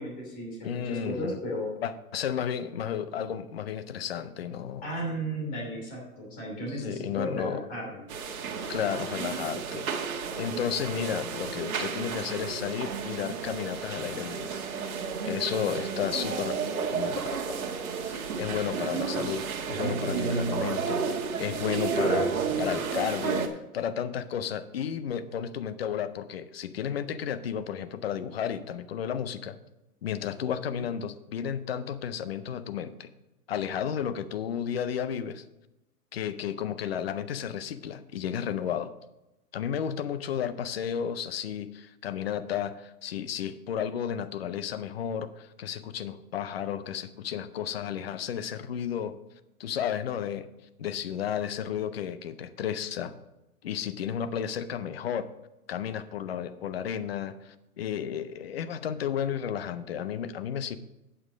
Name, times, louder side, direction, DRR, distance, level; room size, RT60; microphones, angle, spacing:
voice 1, 0.0-1.7 4.8-8.1 19.1-19.3 30.7-30.8, equal, 20° left, -2 dB, 2.8 m, -35 dB
voice 2, 0.6-1.4 1.8-4.9 6.7-7.6 8.7-9.9 10.4-14.6 15.2-16.6 16.9-17.6 18.0-23.5 23.7-29.6 30.0-33.1 33.5-35.4 36.1-38.9 39.5-49.2 49.6-50.5 50.8-53.1 53.6-55.3 55.7-60.8, left 8 dB, 45° left, 12 dB, 0.6 m, -33 dB
sound 1, 8.1-23.5, right 5 dB, 65° right, 1.5 m, -31 dB
8.7 x 7.4 x 5.0 m, 0.95 s
hypercardioid pair, 160°, 45 cm